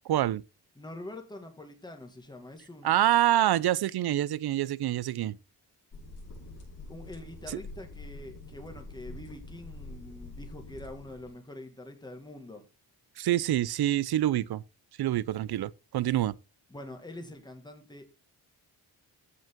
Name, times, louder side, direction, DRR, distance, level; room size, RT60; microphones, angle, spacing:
voice 1, 0.1-0.4 2.8-5.4 7.5-7.6 13.2-14.6 15.0-16.3, right 13 dB, 70° right, 0.6 m, -26 dB
voice 2, 0.8-2.9 6.9-12.7 16.7-18.1, left 1 dB, 10° left, 1.9 m, -45 dB
sound 1, 5.9-11.3, left 2 dB, 50° left, 6.0 m, -45 dB
15.0 x 5.4 x 3.7 m
wide cardioid pair, 180°, 39 cm